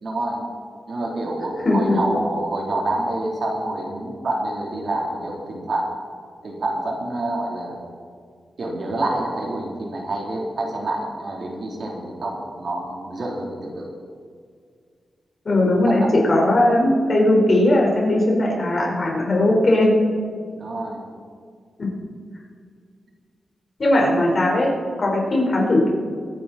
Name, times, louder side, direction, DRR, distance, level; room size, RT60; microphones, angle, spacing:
voice 1, 0.0-0.4 0.9-5.9 6.4-7.8 8.6-13.9 15.9-16.1 20.6-21.1, right 2 dB, 55° right, -1 dB, 3.5 m, -27 dB
voice 2, 1.6-2.0 15.4-19.9 21.8-21.9 23.8-24.7 25.0-25.9, left 1 dB, 45° left, -2 dB, 4.6 m, -18 dB
24.0 x 10.0 x 4.3 m, 2.1 s
cardioid pair, 90°, 0 cm